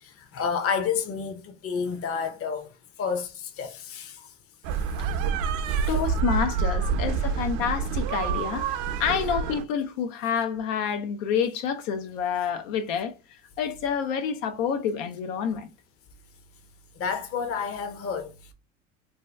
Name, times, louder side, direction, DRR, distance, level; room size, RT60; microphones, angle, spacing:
voice 1, 0.0-2.7 3.0-4.3 5.7-5.9 6.9-7.3 17.0-18.5, left 6 dB, 35° left, 0.7 m, -30 dB
sound 1, 4.6-9.6, right 6 dB, 60° right, 0.5 m, -27 dB
voice 2, 5.9-13.1 13.6-15.7, left 7 dB, 85° left, 0.6 m, -28 dB
2.7 x 2.2 x 3.2 m
hypercardioid pair, 85°, 38 cm